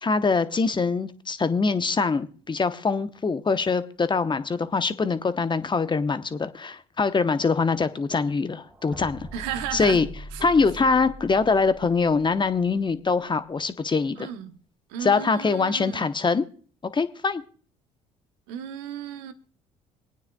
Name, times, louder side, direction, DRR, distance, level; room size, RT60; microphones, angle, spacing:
voice 1, 0.0-9.3 9.7-10.1 10.4-14.3 15.0-16.4 16.9-17.4, left 4 dB, 25° left, 0.9 m, -23 dB
sound 1, 8.6-12.6, equal, 10° right, 2.6 m, -42 dB
voice 2, 9.3-10.0 10.3-10.5 14.2-14.6 14.9-16.0 18.5-19.3, right 9 dB, 80° right, 0.9 m, -34 dB
27.5 x 9.3 x 2.3 m
hypercardioid pair, 60°, 18 cm